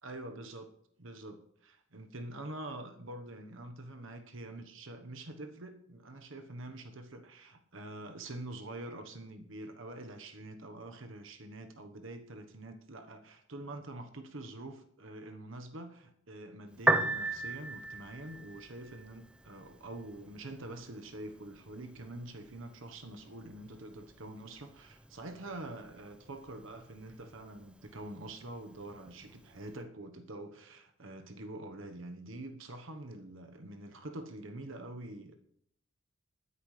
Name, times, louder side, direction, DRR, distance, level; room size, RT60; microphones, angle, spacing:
voice 1, 0.0-0.7 1.0-35.3, right 2 dB, 65° right, 6 dB, 1.2 m, -45 dB
Piano, 16.7-29.7, right 2 dB, 5° right, 0.6 m, -39 dB
20.0 x 9.6 x 3.3 m, 0.69 s
head